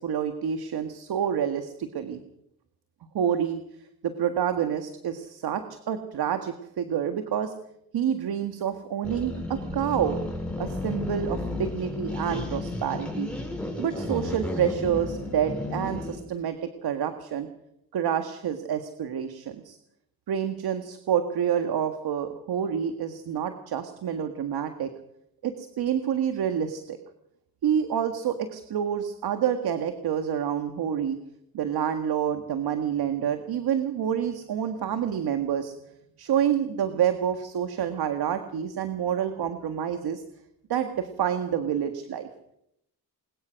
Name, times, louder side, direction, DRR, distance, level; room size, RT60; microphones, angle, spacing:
voice 1, 0.0-2.2 3.1-3.6 4.0-7.5 7.9-10.2 10.6-13.3 13.8-17.5 17.9-19.8 20.3-24.9 25.4-27.0 27.6-31.2 31.5-35.7 36.2-40.2 40.7-42.3, right 9 dB, 70° right, 8 dB, 1.8 m, -28 dB
sound 1, 9.0-16.2, left 2 dB, 5° left, 6.8 m, -33 dB
22.0 x 20.5 x 6.4 m, 0.76 s
cardioid pair, 95°, 39 cm